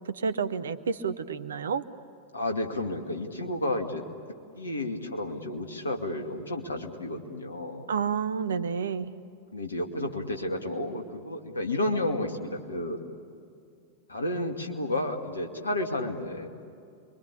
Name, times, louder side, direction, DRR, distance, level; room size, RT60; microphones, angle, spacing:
voice 1, 0.1-1.8 7.9-9.1, right 6 dB, 65° right, 13 dB, 1.0 m, -30 dB
voice 2, 2.3-4.0 4.5-7.9 9.5-13.0 14.1-16.5, left 1 dB, 75° left, 3 dB, 2.4 m, -31 dB
28.0 x 23.5 x 8.5 m, 2.5 s
figure-of-eight pair, 90°, 0 cm